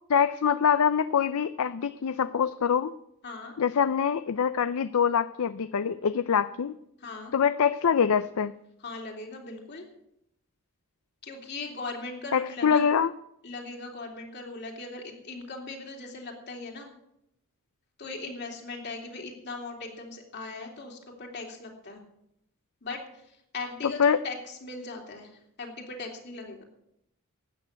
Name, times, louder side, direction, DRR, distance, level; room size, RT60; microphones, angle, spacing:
voice 1, 0.1-2.9 3.6-6.7 7.3-8.5 12.3-13.1 23.8-24.2, left 7 dB, 65° left, 14 dB, 0.5 m, -24 dB
voice 2, 3.2-3.6 7.0-7.3 8.8-9.9 11.2-12.9 13.4-16.9 18.0-22.0 22.8-26.6, left 3 dB, 50° left, 1 dB, 3.2 m, -39 dB
13.0 x 9.1 x 8.2 m, 0.80 s
head